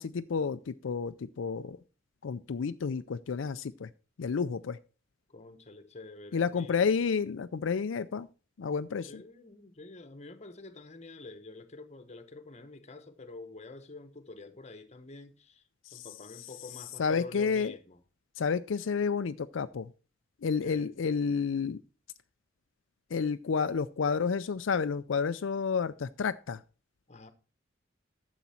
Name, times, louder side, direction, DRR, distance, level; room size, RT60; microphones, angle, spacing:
voice 1, 0.0-1.8 2.2-3.9 4.2-4.8 6.3-8.3 8.6-9.2 15.9-16.1 17.0-17.7 18.4-19.9 20.4-21.8 23.1-26.6, left 5 dB, 85° left, 0.5 m, -30 dB
voice 2, 5.3-6.9 9.1-15.6 15.9-18.0 20.6-20.9 27.1-27.3, left 3 dB, 35° left, 1.1 m, -48 dB
12.0 x 7.3 x 4.3 m
head